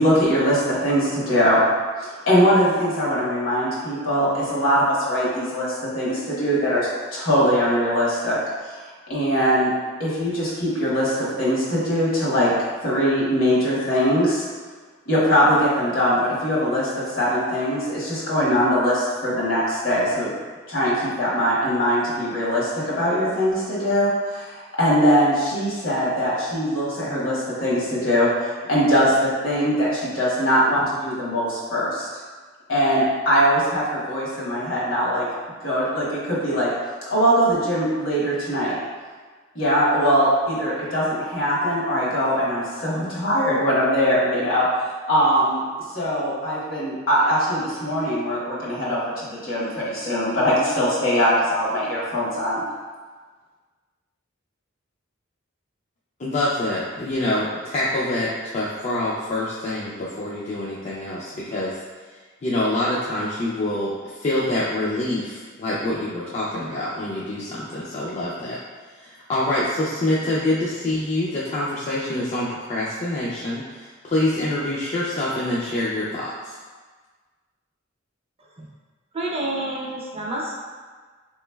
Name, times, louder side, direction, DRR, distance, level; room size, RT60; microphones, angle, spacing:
voice 1, 0.0-1.6 2.0-8.4 8.6-8.8 9.1-9.7 10.0-12.5 12.8-14.4 15.1-20.3 20.7-28.3 28.7-32.1 32.7-35.2 35.6-36.7 37.1-38.8 39.5-44.7 45.1-45.6 45.9-52.6, equal, 75° left, -7 dB, 1.3 m, -21 dB
voice 2, 56.2-61.8 62.4-68.6 69.0-76.6, left 1 dB, 35° left, -7 dB, 0.4 m, -26 dB
voice 3, 79.1-80.6, right 1 dB, 30° right, -3 dB, 0.5 m, -28 dB
3.8 x 3.0 x 2.2 m, 1.4 s
head